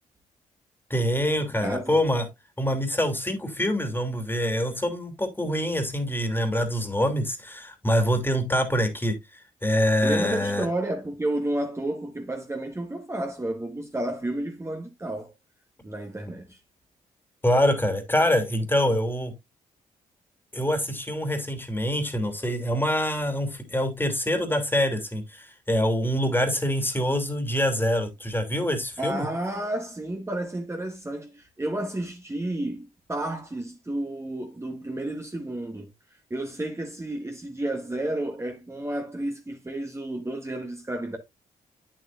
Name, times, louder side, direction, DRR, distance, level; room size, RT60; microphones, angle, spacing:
voice 1, 0.9-2.2 2.6-10.7 17.4-19.3 20.5-29.3, equal, 15° left, 2.8 m, -25 dB
voice 2, 1.6-2.0 5.4-5.5 10.0-15.3 15.8-16.6 29.0-35.9 36.3-41.2, right 1 dB, 20° right, 1.8 m, -31 dB
8.4 x 7.6 x 2.5 m
supercardioid pair, 55°, 15 cm